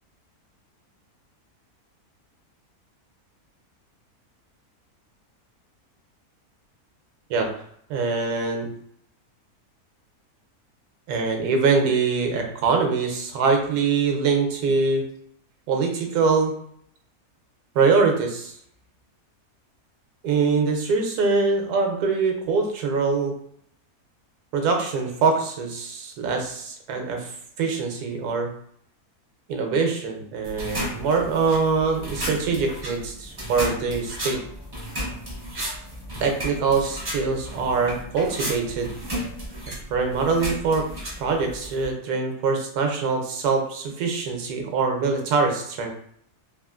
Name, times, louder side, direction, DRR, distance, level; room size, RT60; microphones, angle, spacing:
voice 1, 7.9-8.7 11.1-15.0 15.7-16.5 17.7-18.5 20.2-23.3 24.5-28.5 29.5-34.4 36.2-38.9 39.9-40.9 41.2-45.9, right 4 dB, 85° right, 3 dB, 1.2 m, -23 dB
sound 1, 30.4-41.9, equal, 40° right, 0.3 m, -34 dB
3.3 x 2.4 x 2.4 m, 0.66 s
omnidirectional pair, 1.6 m